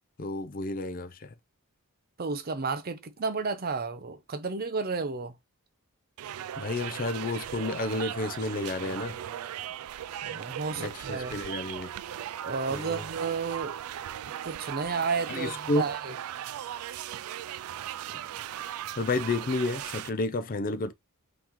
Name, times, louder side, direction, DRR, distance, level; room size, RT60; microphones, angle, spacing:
voice 1, 0.2-1.3 6.6-9.2 10.8-11.9 12.7-13.0 15.3-15.8 19.0-20.9, left 2 dB, 40° left, 0.5 m, -31 dB
voice 2, 2.2-5.3 10.2-11.4 12.4-13.8 14.2-16.1, right 4 dB, 45° right, 0.6 m, -32 dB
sound 1, 6.2-20.1, right 11 dB, 75° right, 0.3 m, -38 dB
5.8 x 2.8 x 3.0 m
head